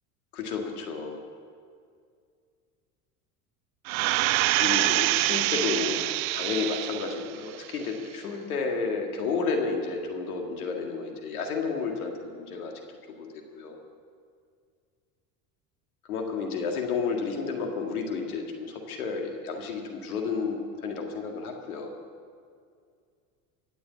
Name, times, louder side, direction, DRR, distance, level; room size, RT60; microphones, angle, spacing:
voice 1, 0.3-1.2 4.6-12.7 13.1-13.8 16.1-21.9, left 4 dB, 80° left, 2 dB, 2.1 m, -31 dB
sound 1, 3.9-7.3 7.7-7.8, right 19 dB, 70° right, 0.5 m, -25 dB
17.0 x 6.9 x 8.4 m, 2.2 s
hypercardioid pair, 75°, 43 cm